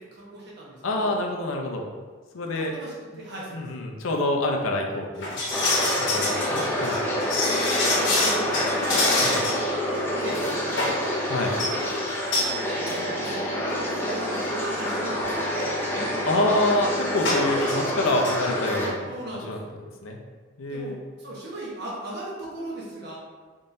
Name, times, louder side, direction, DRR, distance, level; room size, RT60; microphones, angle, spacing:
voice 1, 0.0-1.2 2.5-3.6 5.6-5.9 7.4-9.3 9.9-11.0 12.8-13.5 13.9-16.2 19.0-19.8 20.7-20.9 21.2-23.1, right 1 dB, 55° right, -5 dB, 1.1 m, -38 dB
voice 2, 0.8-1.8 2.3-2.7 3.5-5.3 6.0-7.0 9.2-9.4 11.3-11.5 16.2-19.1 19.5-20.2 20.6-21.0, left 1 dB, 85° left, 1 dB, 0.6 m, -26 dB
sound 1, 5.2-9.7 9.9-10.0 10.3-11.0 11.4-11.7 12.3-12.5 12.9-13.0 13.2-13.4 14.1-14.2 14.6-14.8 17.2-17.8 18.1-18.3 18.7-18.8, left 2 dB, 65° left, 1.0 m, -26 dB
sound 2, 5.5-18.9, equal, 10° left, 0.5 m, -27 dB
4.0 x 3.7 x 2.6 m, 1.4 s
head